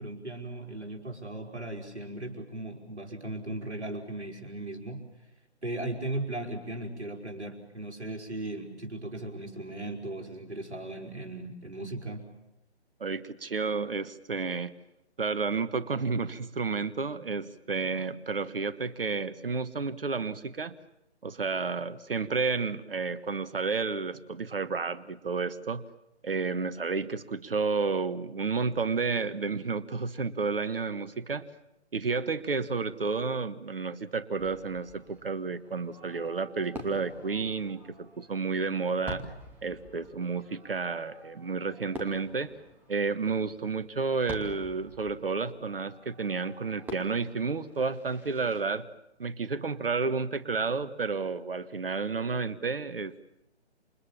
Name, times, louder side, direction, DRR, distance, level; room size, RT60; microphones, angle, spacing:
voice 1, 0.0-5.1 5.6-12.3, right 2 dB, 75° right, 2 dB, 5.1 m, -37 dB
voice 2, 13.0-14.7 15.2-20.7 21.2-25.8 26.2-31.5 31.9-37.8 38.2-39.2 39.6-42.5 42.9-48.9 49.2-53.2, right 4 dB, 55° right, 15 dB, 1.4 m, -31 dB
Fireworks, 34.4-48.6, equal, 5° right, 2.6 m, -47 dB
28.5 x 27.5 x 7.2 m, 0.86 s
figure-of-eight pair, 140°, 34 cm